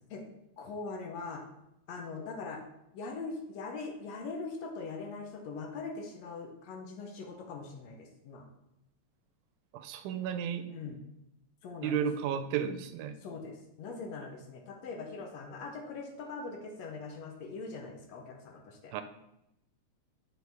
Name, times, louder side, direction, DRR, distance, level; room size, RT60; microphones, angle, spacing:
voice 1, 0.6-1.4 1.9-2.6 2.9-8.4 10.7-11.0 11.6-12.3 13.2-18.9, left 4 dB, 70° left, 2 dB, 1.9 m, -41 dB
voice 2, 9.7-10.7 11.8-13.2 18.9-19.0, right 8 dB, 90° right, 10 dB, 2.0 m, -33 dB
8.1 x 4.7 x 3.4 m, 0.85 s
omnidirectional pair, 3.4 m